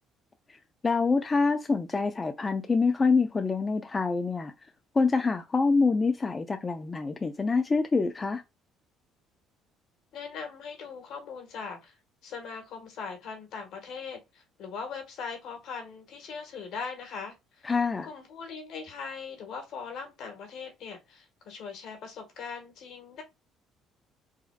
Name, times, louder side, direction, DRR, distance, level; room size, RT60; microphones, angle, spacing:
voice 1, 0.8-4.5 4.9-8.4 17.6-18.1, left 4 dB, 25° left, 0.4 m, -26 dB
voice 2, 10.1-12.0 12.2-17.7 18.0-23.2, left 5 dB, 65° left, 1.6 m, -40 dB
4.9 x 2.7 x 2.4 m
cardioid pair, 115°, 0 cm